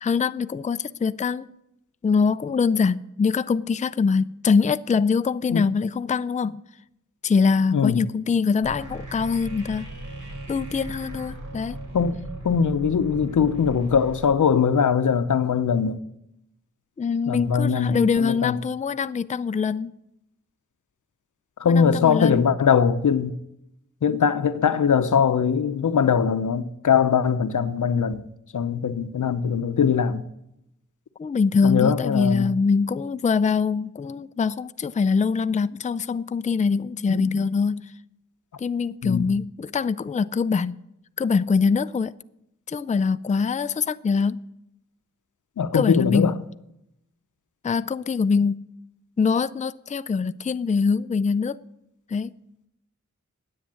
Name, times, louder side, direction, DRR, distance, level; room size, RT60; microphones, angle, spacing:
voice 1, 0.0-1.5 2.0-6.6 7.2-9.9 10.5-11.8 17.0-19.9 21.6-22.5 31.2-37.9 38.6-40.8 41.2-42.1 42.7-44.4 45.7-46.3 47.6-48.6 49.2-51.6 52.1-52.3, left 5 dB, 25° left, 0.4 m, -23 dB
voice 2, 7.7-8.1 11.9-12.2 12.4-16.0 17.3-18.6 21.6-23.4 24.0-28.2 28.5-30.2 31.6-32.5 37.1-37.3 39.0-39.3 45.6-46.3, left 6 dB, 80° left, 0.8 m, -21 dB
sound 1, 8.6-14.2, right 1 dB, 85° right, 3.3 m, -37 dB
10.0 x 8.2 x 7.6 m
wide cardioid pair, 65°, 30 cm